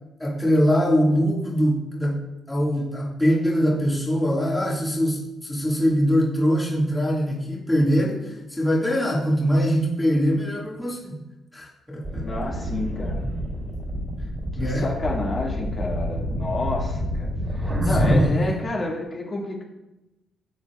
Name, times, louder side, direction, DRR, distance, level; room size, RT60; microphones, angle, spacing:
voice 1, 0.2-2.2 2.5-11.1 11.5-12.3 14.6-14.9 17.8-18.5, equal, 10° left, -4 dB, 1.8 m, -22 dB
sound 1, 12.0-18.3, equal, 25° right, 2.7 m, -27 dB
voice 2, 12.2-13.2 14.5-19.6, left 2 dB, 40° left, -3 dB, 2.0 m, -30 dB
11.5 x 7.1 x 2.3 m, 0.97 s
cardioid pair, 90°, 0 cm